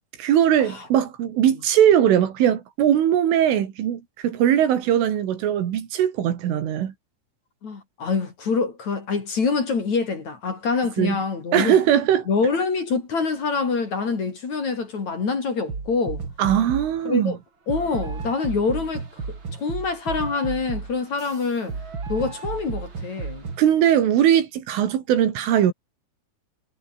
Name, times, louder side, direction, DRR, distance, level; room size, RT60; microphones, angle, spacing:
voice 1, 0.2-6.9 11.0-11.2 11.5-12.3 16.4-17.4 23.6-25.7, right 10 dB, 75° right, 5.1 m, -20 dB
voice 2, 7.6-11.8 12.3-16.2 17.0-17.4 17.7-21.8 22.1-23.5, left 4 dB, 40° left, 4.4 m, -25 dB
sound 1, 15.7-17.0 17.7-23.7, right 4 dB, 30° right, 3.3 m, -33 dB
omnidirectional pair, 5.7 m